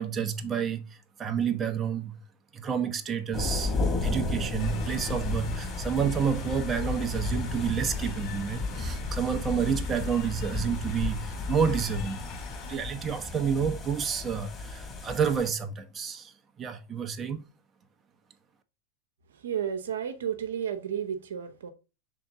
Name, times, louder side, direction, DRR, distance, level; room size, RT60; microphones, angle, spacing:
voice 1, 0.0-2.2 2.5-3.8 4.0-12.2 12.6-17.4, right 7 dB, 25° right, 0.9 m, -30 dB
sound 1, 3.3-15.5, left 2 dB, 25° left, 2.2 m, -33 dB
sound 2, 4.6-12.8, left 6 dB, 50° left, 2.4 m, -46 dB
voice 2, 19.4-21.7, right 8 dB, 75° right, 0.9 m, -32 dB
7.0 x 3.9 x 3.7 m
hypercardioid pair, 90°, 0 cm